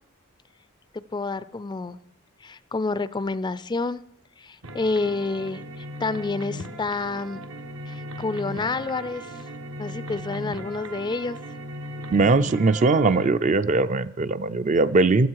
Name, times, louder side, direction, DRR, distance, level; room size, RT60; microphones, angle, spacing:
voice 1, 1.1-2.0 2.4-4.0 4.4-7.4 7.9-9.3 9.8-11.4, left 3 dB, 20° left, 16 dB, 0.4 m, -29 dB
sound 1, 4.6-13.3, equal, 85° right, 1.4 m, -37 dB
voice 2, 12.1-15.3, right 3 dB, 35° right, 12 dB, 0.4 m, -20 dB
16.0 x 13.0 x 4.7 m, 0.75 s
head